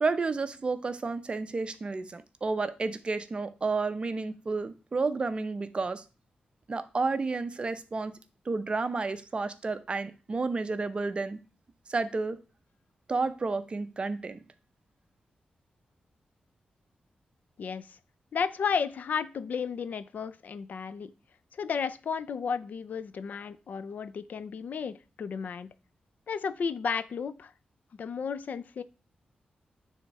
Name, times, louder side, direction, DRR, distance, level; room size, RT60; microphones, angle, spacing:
voice 1, 0.0-6.0 6.7-8.2 8.5-11.4 11.9-12.4 13.1-14.4, right 3 dB, 35° right, 0.7 m, -31 dB
voice 2, 17.6-18.0 18.3-21.1 21.5-25.7 26.3-27.5 28.0-28.8, left 6 dB, 70° left, 0.5 m, -33 dB
9.7 x 3.6 x 4.1 m
wide cardioid pair, 95°, 3 cm